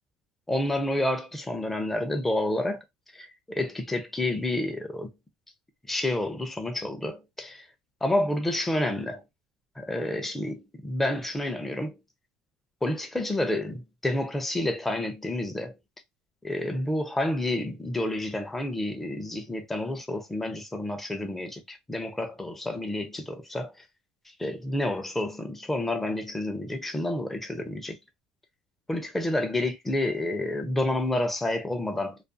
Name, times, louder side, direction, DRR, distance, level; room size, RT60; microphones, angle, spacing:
voice 1, 0.5-2.8 3.1-5.1 5.9-7.7 8.0-9.2 9.8-12.0 12.8-15.7 16.4-23.8 24.4-28.0 28.9-32.2, left 1 dB, 10° left, 0.5 m, -29 dB
2.3 x 2.3 x 2.5 m
cardioid pair, 150°, 3 cm